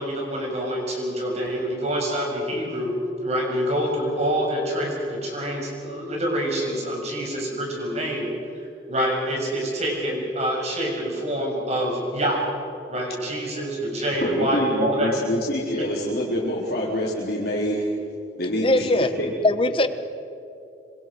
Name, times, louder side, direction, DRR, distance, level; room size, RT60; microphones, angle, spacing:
voice 1, 0.0-2.9 3.2-8.3 8.9-12.4 12.9-15.1 15.8-15.9, equal, 40° right, -1 dB, 6.7 m, -26 dB
voice 2, 14.2-17.9 18.4-18.9 19.2-19.3, equal, 60° left, -5 dB, 4.2 m, -26 dB
voice 3, 18.6-19.1 19.4-19.9, left 2 dB, 30° left, 11 dB, 1.1 m, -20 dB
26.5 x 24.5 x 6.3 m, 2.6 s
head